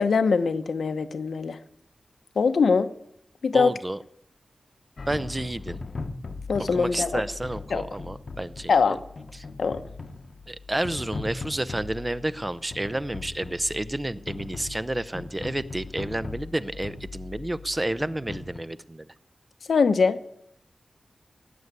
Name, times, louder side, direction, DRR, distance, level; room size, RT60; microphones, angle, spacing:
voice 1, 0.0-1.6 2.4-2.9 3.4-3.7 6.5-7.2 7.7-7.8 8.7-9.0 9.6-9.8 19.7-20.2, left 5 dB, 85° left, 10 dB, 1.0 m, -22 dB
voice 2, 3.5-4.0 5.1-5.8 6.7-8.7 9.3-9.5 10.5-19.1, right 1 dB, 20° right, 14 dB, 0.7 m, -30 dB
sound 1, 5.0-18.6, left 3 dB, 55° left, 1.0 m, -39 dB
17.5 x 8.1 x 9.6 m, 0.77 s
wide cardioid pair, 85°, 0 cm